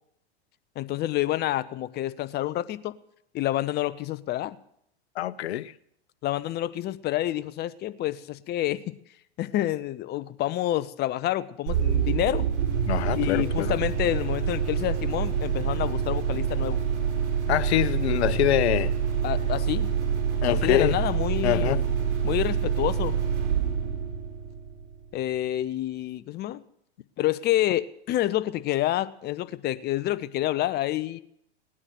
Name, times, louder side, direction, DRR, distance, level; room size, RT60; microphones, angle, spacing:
voice 1, 0.8-3.0 3.3-4.6 6.2-8.9 9.4-12.5 13.2-16.8 19.2-19.9 20.5-21.8 22.2-23.2 25.1-26.6 27.2-31.2, left 14 dB, 30° left, 0.8 m, -28 dB
voice 2, 5.2-5.7 12.9-13.8 17.5-18.9 20.4-21.0 21.4-21.9, left 14 dB, 70° left, 0.8 m, -25 dB
sound 1, 11.7-25.1, right 7 dB, 60° right, 6.0 m, -27 dB
19.0 x 9.8 x 7.8 m
hypercardioid pair, 120°, 33 cm